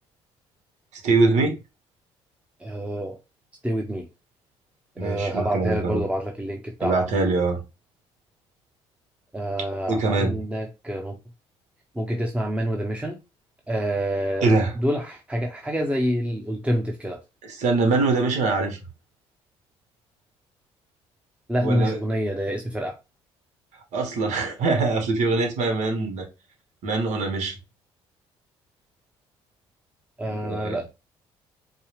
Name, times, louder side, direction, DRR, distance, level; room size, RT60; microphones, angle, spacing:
voice 1, 1.0-1.6 5.0-6.0 6.8-7.6 9.9-10.3 14.4-14.7 17.4-18.8 21.6-22.0 23.9-26.3 26.8-27.5 30.3-30.8, right 3 dB, 70° right, 1.3 m, -23 dB
voice 2, 2.6-3.2 3.6-4.1 5.0-7.1 9.3-11.2 11.9-13.2 13.7-17.2 21.5-23.0 30.2-30.9, equal, 10° right, 0.9 m, -27 dB
4.7 x 2.3 x 3.3 m
hypercardioid pair, 55°, 13 cm